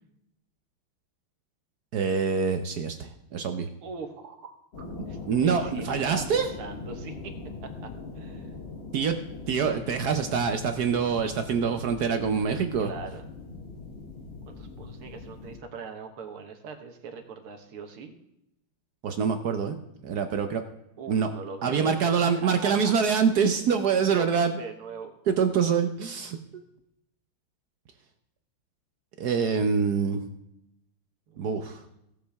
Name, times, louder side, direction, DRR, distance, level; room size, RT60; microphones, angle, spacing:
voice 1, 1.9-3.7 5.3-6.5 8.9-9.2 9.5-12.9 19.0-19.8 20.0-20.6 21.1-21.3 21.6-24.5 25.3-26.6 29.2-30.2 31.4-31.8, right 6 dB, 65° right, 7 dB, 1.0 m, -25 dB
voice 2, 3.8-4.5 5.1-7.3 7.8-7.9 8.2-8.6 12.8-13.2 14.5-18.1 21.0-22.9 23.5-23.6 24.1-25.1 31.3-32.0, right 5 dB, 90° right, 5 dB, 2.2 m, -41 dB
sound 1, 4.7-15.6, left 3 dB, 35° left, 1.2 m, -41 dB
17.0 x 7.4 x 3.5 m, 0.83 s
omnidirectional pair, 2.3 m